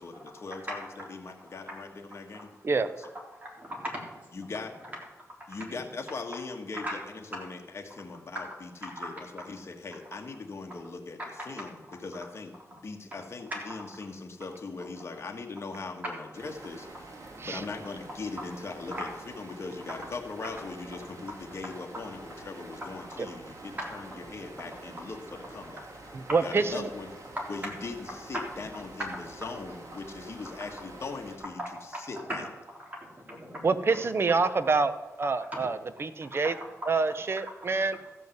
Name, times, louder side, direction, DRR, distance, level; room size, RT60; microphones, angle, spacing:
voice 1, 0.0-2.5 4.3-4.7 5.5-7.0 7.3-16.9 17.4-19.1 19.4-25.8 26.4-27.1 27.5-31.6 32.1-32.4, left 3 dB, 45° left, 3 dB, 1.5 m, -40 dB
voice 2, 3.3-4.2 6.7-7.0 8.8-9.1 11.2-11.3 12.7-12.8 13.7-13.8 17.3-17.6 18.4-18.5 18.9-19.1 22.8-23.2 23.8-23.9 27.4-27.5 31.6-32.0 32.3-32.4 32.8-33.6 34.4-34.5 35.5-35.7 36.0-36.1, equal, 25° right, -1 dB, 3.6 m, -38 dB
sound 1, 16.3-31.4, right 2 dB, 60° right, 2.4 m, -47 dB
voice 3, 26.3-26.9 33.6-34.9 35.2-36.5 36.9-38.0, right 4 dB, 45° right, 12 dB, 0.7 m, -26 dB
14.0 x 5.4 x 7.9 m, 1.1 s
wide cardioid pair, 90°, 6 cm